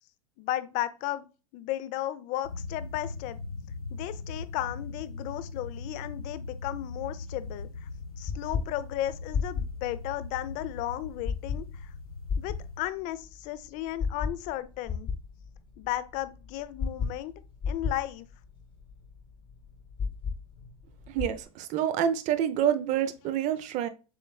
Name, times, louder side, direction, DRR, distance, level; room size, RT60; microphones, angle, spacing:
voice 1, 0.4-1.3 1.5-3.4 3.9-7.9 8.2-11.9 12.4-15.1 15.8-17.3 17.7-18.3, left 14 dB, 45° left, 0.5 m, -34 dB
sound 1, 2.4-12.8, left 3 dB, 90° left, 0.6 m, -40 dB
sound 2, 7.4-21.4, left 5 dB, 30° left, 1.1 m, -36 dB
voice 2, 21.1-23.9, right 9 dB, 40° right, 0.7 m, -27 dB
7.0 x 3.1 x 2.3 m
hypercardioid pair, 100°, 18 cm